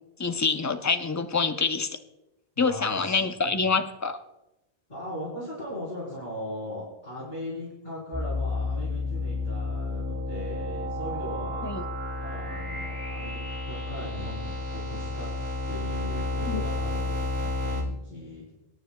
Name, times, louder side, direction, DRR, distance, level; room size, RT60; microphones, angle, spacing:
voice 1, 0.2-1.9 2.6-4.2 11.6-11.8 16.5-16.6, left 4 dB, 25° left, 8 dB, 0.4 m, -26 dB
voice 2, 2.6-3.6 4.9-11.7 12.2-13.4 13.7-15.3 15.7-18.5, left 1 dB, 50° left, -6 dB, 4.0 m, -39 dB
sound 1, 8.1-17.8, left 2 dB, 10° right, 2.7 m, -31 dB
24.0 x 9.6 x 2.3 m, 0.94 s
omnidirectional pair, 1.0 m